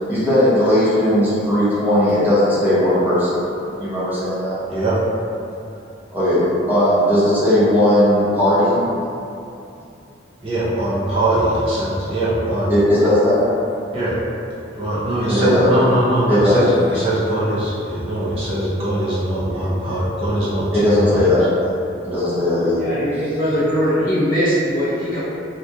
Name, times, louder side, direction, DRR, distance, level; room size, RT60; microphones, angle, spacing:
voice 1, 0.1-4.6 6.1-6.4 6.7-8.8 12.7-13.4 15.3-15.7 16.3-16.8 20.7-21.5 22.0-22.9, left 1 dB, 10° right, -12 dB, 1.0 m, -17 dB
voice 2, 10.4-12.7 13.9-14.2 14.7-21.2, right 1 dB, 30° right, -10 dB, 0.6 m, -21 dB
voice 3, 22.7-25.2, equal, 45° left, -11 dB, 1.1 m, -20 dB
2.8 x 2.4 x 3.4 m, 2.7 s
head